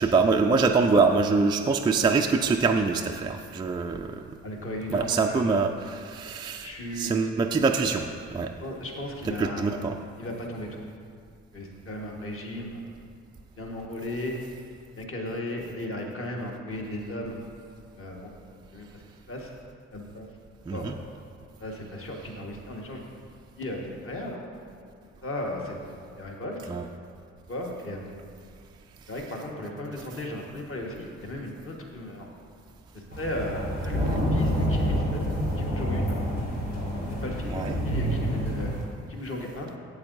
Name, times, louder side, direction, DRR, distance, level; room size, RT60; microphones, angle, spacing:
voice 1, 0.0-4.2 4.9-8.1 8.3-8.5 9.2-10.0 20.7-20.9 26.7-26.8 34.0-34.2 37.5-37.8, right 4 dB, 10° right, 3 dB, 0.4 m, -24 dB
voice 2, 4.4-5.5 6.6-7.1 8.6-9.7 10.2-10.8 11.5-12.8 13.6-14.4 14.9-17.3 18.0-18.3 18.7-18.9 19.3-19.5 19.9-20.3 20.7-20.9 21.6-23.0 23.6-24.4 25.2-26.6 27.5-28.1 29.1-32.3 32.9-36.2 37.1-38.7 39.1-39.7, left 1 dB, 35° left, 0 dB, 1.5 m, -36 dB
sound 1, 33.1-38.8, equal, 80° left, 1.9 m, -28 dB
12.5 x 8.3 x 2.6 m, 2.2 s
figure-of-eight pair, 40°, 37 cm